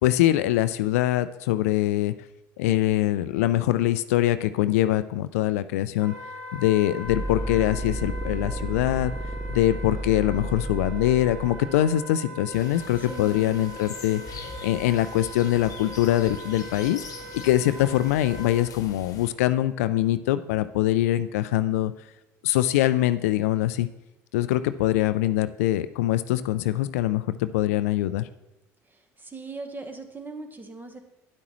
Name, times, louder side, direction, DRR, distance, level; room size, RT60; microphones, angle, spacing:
voice 1, 0.0-2.1 2.6-6.1 6.5-9.1 9.5-17.0 17.3-21.9 22.4-23.9 24.3-28.3, left 14 dB, 85° left, 13 dB, 0.4 m, -23 dB
Wind instrument woodwind instrument, 6.0-18.7, right 2 dB, 60° right, 3.4 m, -41 dB
sound 1, 7.0-11.9, right 1 dB, 5° right, 0.5 m, -32 dB
sound 2, 12.5-19.3, left 5 dB, 45° left, 1.1 m, -42 dB
voice 2, 13.0-13.6 29.2-31.0, right 3 dB, 25° right, 6 dB, 1.2 m, -39 dB
9.6 x 8.4 x 3.1 m, 0.90 s
hypercardioid pair, 65°, 8 cm